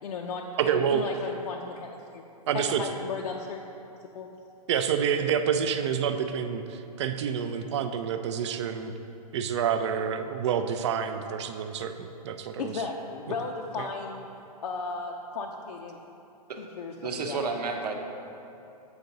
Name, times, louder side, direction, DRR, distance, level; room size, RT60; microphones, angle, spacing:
voice 1, 0.0-2.2 2.5-3.6 4.1-4.3 12.6-14.2 14.6-16.0 16.6-17.4, left 4 dB, 70° left, 0 dB, 0.5 m, -35 dB
voice 2, 0.6-1.0 2.5-2.8 4.7-8.9 9.3-12.8 13.8-13.9, right 8 dB, 45° right, 8 dB, 0.4 m, -28 dB
voice 3, 17.0-17.9, right 4 dB, 80° right, 4 dB, 0.9 m, -31 dB
7.9 x 4.7 x 4.0 m, 2.8 s
hypercardioid pair, 160°, 20 cm